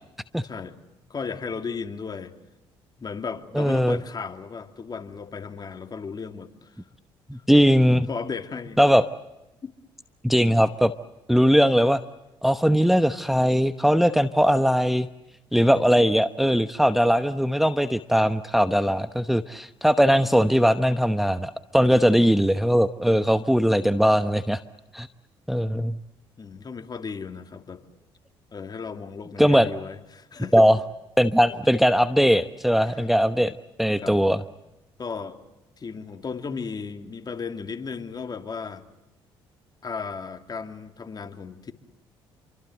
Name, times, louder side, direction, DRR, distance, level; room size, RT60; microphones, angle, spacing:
voice 1, 0.4-0.8 1.1-2.3 3.0-6.7 8.1-8.8 9.6-9.7 26.4-27.8 28.5-30.5 32.9-33.0 34.0-34.2 35.0-35.4 35.8-38.9 39.8-41.7, left 5 dB, 40° left, 7 dB, 2.7 m, -35 dB
voice 2, 3.5-4.0 7.3-8.1 8.8-9.0 10.2-10.9 11.3-12.0 12.4-15.1 15.5-24.6 24.9-25.1 25.5-26.0 29.4-29.7 30.5-30.8 31.2-33.5 33.8-34.4, equal, ahead, 10 dB, 1.0 m, -20 dB
28.0 x 25.0 x 7.9 m, 0.96 s
supercardioid pair, 70°, 11 cm